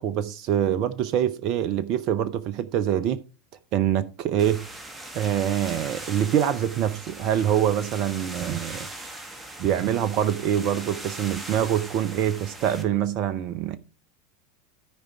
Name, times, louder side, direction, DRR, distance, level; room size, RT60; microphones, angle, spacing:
voice 1, 0.0-3.2 3.7-4.7 5.1-8.9 9.6-13.8, right 10 dB, 45° right, 0.6 m, -25 dB
sound 1, 4.4-12.8, right 1 dB, 15° right, 1.8 m, -40 dB
13.5 x 5.0 x 4.5 m
figure-of-eight pair, 80°, 0 cm